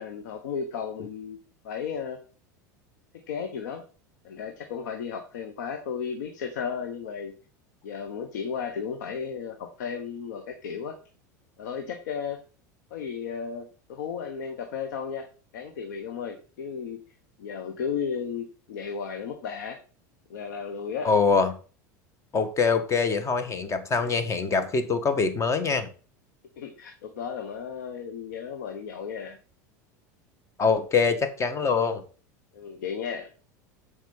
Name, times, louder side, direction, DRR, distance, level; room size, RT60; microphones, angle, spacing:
voice 1, 0.0-1.4 1.6-2.2 3.3-3.8 4.2-7.3 7.8-10.9 11.6-12.4 12.9-15.2 15.5-17.0 17.4-19.8 20.3-21.1 26.6-29.4 32.5-33.3, left 6 dB, 80° left, 6 dB, 1.1 m, -34 dB
voice 2, 21.0-21.5 22.3-25.9 30.6-32.0, left 5 dB, 30° left, 10 dB, 1.5 m, -24 dB
7.6 x 4.9 x 5.3 m, 0.38 s
hypercardioid pair, 95°, 10 cm